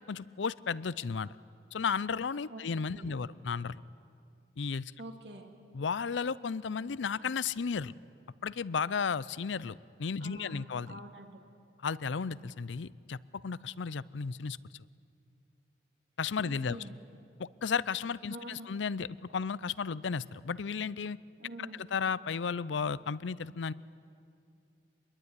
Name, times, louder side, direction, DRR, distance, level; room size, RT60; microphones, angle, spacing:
voice 1, 0.1-1.4 1.7-3.8 4.6-4.9 5.7-7.9 8.4-11.0 11.8-14.6 16.2-16.8 17.4-19.1 19.3-21.2 21.9-23.7, left 5 dB, 85° left, 19 dB, 0.5 m, -34 dB
voice 2, 2.5-3.3 5.0-5.5 10.2-11.4 16.4-17.0 18.3-18.7 21.4-21.8, right 1 dB, 70° right, 4 dB, 2.6 m, -47 dB
25.5 x 21.5 x 9.6 m, 2.5 s
head